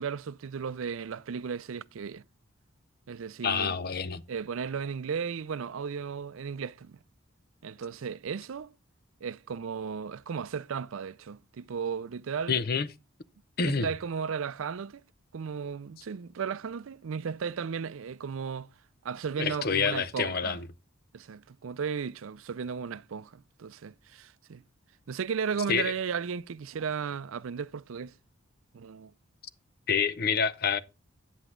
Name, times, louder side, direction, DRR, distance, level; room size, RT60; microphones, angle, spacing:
voice 1, 0.0-2.2 3.1-3.8 4.3-7.0 7.6-8.7 9.2-12.6 13.6-15.0 15.3-18.7 19.0-20.6 21.1-24.6 25.1-28.1 28.7-29.1, right 6 dB, 75° right, 0.4 m, -35 dB
voice 2, 3.4-4.2 12.5-12.9 13.6-13.9 19.4-20.7 25.7-25.9 29.9-30.8, left 6 dB, 45° left, 0.6 m, -27 dB
9.3 x 7.9 x 3.7 m
head